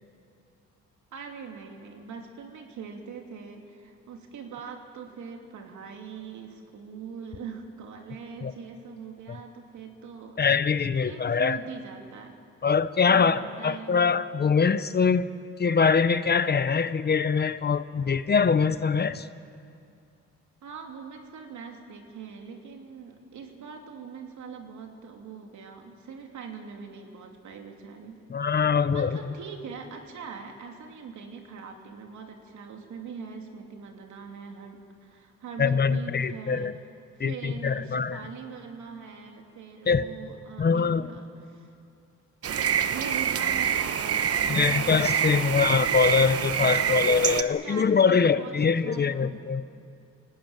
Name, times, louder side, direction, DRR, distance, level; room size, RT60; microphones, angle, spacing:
voice 1, 1.1-10.4 11.0-12.3 13.1-14.2 20.6-36.7 37.1-41.7 42.8-44.9 46.6-49.3, right 5 dB, 70° right, 3.0 m, -42 dB
voice 2, 10.4-11.6 12.6-15.3 15.6-19.3 28.3-29.2 35.6-36.7 37.2-38.2 39.9-40.1 40.6-41.1 44.5-49.6, left 5 dB, 35° left, 0.8 m, -23 dB
sound 1, 42.4-47.4, right 8 dB, 50° right, 1.0 m, -26 dB
24.0 x 18.0 x 9.0 m
cardioid pair, 90°, 30 cm